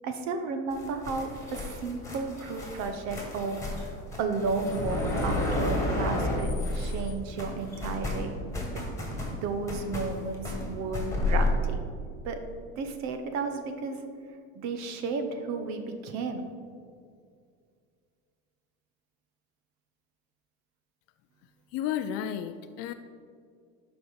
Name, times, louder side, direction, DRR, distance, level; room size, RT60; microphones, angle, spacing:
voice 1, 0.0-8.3 9.4-11.8 12.2-12.4 12.8-14.1 14.5-16.4, right 4 dB, 55° right, 7 dB, 0.9 m, -33 dB
sound 1, 0.7-7.1 7.4-11.5, left 2 dB, 10° left, 1.8 m, -31 dB
voice 2, 21.7-22.9, left 10 dB, 50° left, 8 dB, 0.4 m, -32 dB
11.5 x 5.0 x 4.0 m, 2.2 s
supercardioid pair, 125°, 32 cm